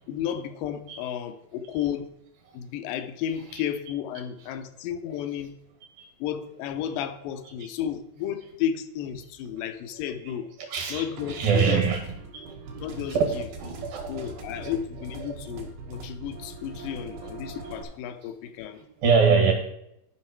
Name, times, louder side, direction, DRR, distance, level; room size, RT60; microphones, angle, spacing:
voice 1, 0.1-2.1 2.5-5.6 6.2-10.5 10.9-11.8 12.8-13.4 14.1-18.8, left 9 dB, 80° left, 9 dB, 2.2 m, -33 dB
voice 2, 10.7-12.0 12.3-12.5 13.1-13.3 13.6-14.7 15.2-15.3 18.8-19.5, right 5 dB, 70° right, 3 dB, 3.5 m, -24 dB
sound 1, 11.2-17.8, right 3 dB, 85° right, 3.2 m, -41 dB
11.5 x 5.6 x 4.5 m, 0.81 s
omnidirectional pair, 4.3 m